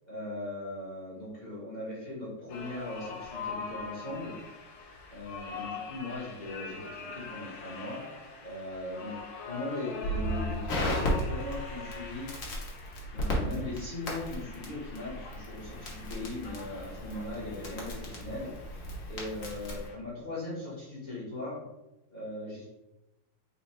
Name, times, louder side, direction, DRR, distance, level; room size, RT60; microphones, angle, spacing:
voice 1, 0.0-4.4 5.1-9.2 9.4-12.3 13.1-21.6 22.1-22.7, left 1 dB, 35° left, -8 dB, 0.8 m, -39 dB
sound 1, 2.5-20.0, left 4 dB, 75° left, 1.5 m, -44 dB
Crackle, 10.0-19.9, equal, 55° left, 1.1 m, -35 dB
4.2 x 2.2 x 4.2 m, 0.97 s
omnidirectional pair, 2.3 m